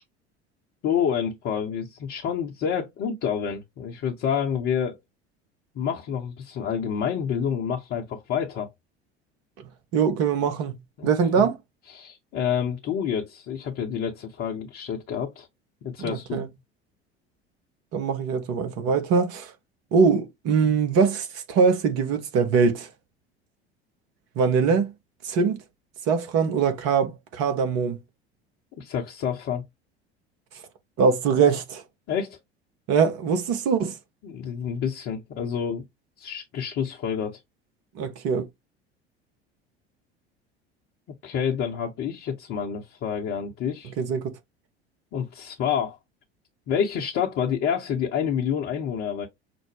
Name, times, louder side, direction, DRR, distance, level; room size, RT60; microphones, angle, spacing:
voice 1, 0.8-5.0 5.7-8.7 11.0-11.1 11.4-11.5 11.9-15.5 15.8-16.4 28.8-29.6 32.1-32.4 34.2-35.8 36.2-37.4 41.2-43.9 45.1-46.0 46.7-49.3, left 8 dB, 40° left, 0.9 m, -28 dB
voice 2, 9.9-10.8 11.0-11.6 16.0-16.5 17.9-19.5 19.9-22.9 24.4-24.9 25.2-25.6 26.1-28.0 31.0-31.8 32.9-33.9 37.9-38.5 44.0-44.3, right 5 dB, 50° right, 1.0 m, -22 dB
5.9 x 2.1 x 3.2 m
figure-of-eight pair, 70°, 32 cm